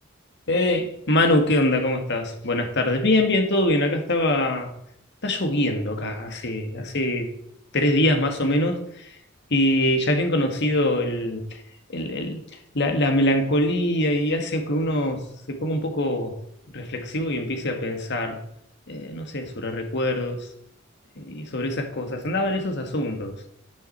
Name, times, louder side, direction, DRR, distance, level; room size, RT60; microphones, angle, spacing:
voice 1, 0.5-4.7 5.2-7.3 7.7-8.8 9.5-11.4 11.9-12.4 12.8-15.2 15.5-16.3 16.7-18.4 18.9-20.5 21.2-23.4, left 1 dB, 60° left, 5 dB, 2.0 m, -23 dB
10.5 x 10.0 x 4.3 m, 0.73 s
head